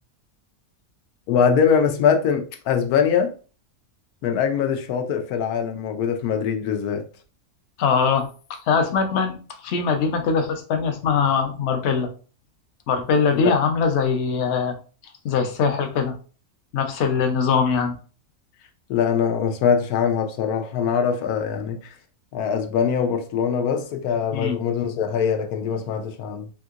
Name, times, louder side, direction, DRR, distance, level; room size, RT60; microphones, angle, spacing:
voice 1, 1.3-3.3 4.2-7.0 13.3-13.5 18.9-22.0 22.3-26.5, left 7 dB, 85° left, 1.1 m, -22 dB
voice 2, 7.8-8.3 8.7-12.1 12.9-14.7 15.2-16.1 16.7-18.0 24.3-24.6, left 5 dB, 60° left, 0.8 m, -22 dB
3.5 x 2.8 x 2.4 m
omnidirectional pair, 1.6 m